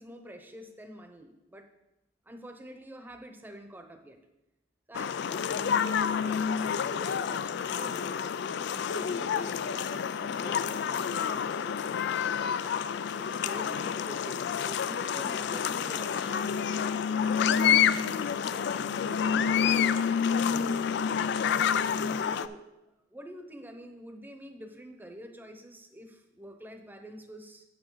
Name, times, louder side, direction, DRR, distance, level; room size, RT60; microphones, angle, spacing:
voice 1, 0.0-1.7 2.2-4.2 4.9-11.9 13.1-21.3 22.1-22.6 23.1-27.6, equal, 10° right, 5 dB, 0.8 m, -47 dB
sound 1, 4.9-22.5, left 7 dB, 65° left, 0.3 m, -28 dB
8.4 x 7.8 x 3.9 m, 0.95 s
head